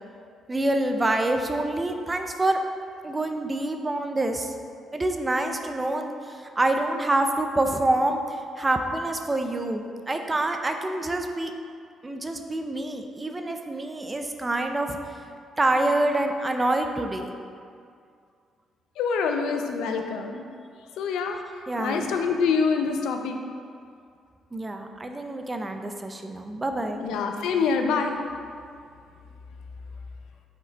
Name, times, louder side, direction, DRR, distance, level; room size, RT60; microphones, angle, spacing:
voice 1, 0.5-2.6 3.0-4.5 4.9-8.2 8.6-11.5 12.0-15.0 15.6-17.3 21.7-22.1 24.5-27.0, right 2 dB, 20° right, 5 dB, 0.5 m, -26 dB
voice 2, 19.0-20.4 21.0-21.4 21.8-23.4 27.0-28.2, left 5 dB, 90° left, 5 dB, 0.6 m, -25 dB
6.5 x 5.2 x 4.0 m, 2.2 s
cardioid pair, 90°, 0 cm